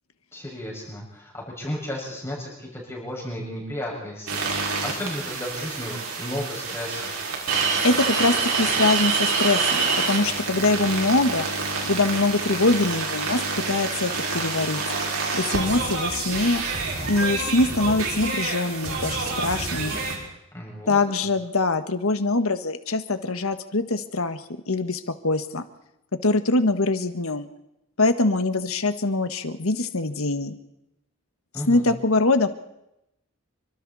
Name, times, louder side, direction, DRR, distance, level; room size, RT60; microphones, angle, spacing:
voice 1, 0.3-7.1 20.5-21.3 31.5-31.9, left 1 dB, 10° left, -3 dB, 6.3 m, -34 dB
sound 1, 4.3-20.2, right 4 dB, 85° right, 5.7 m, -27 dB
voice 2, 7.5-11.5 11.8-13.4 13.7-14.8 15.3-16.6 17.1-19.9 20.9-25.6 26.1-27.5 28.0-30.5 31.7-32.5, left 2 dB, 80° left, 9 dB, 1.6 m, -23 dB
28.0 x 25.0 x 4.3 m, 0.85 s
head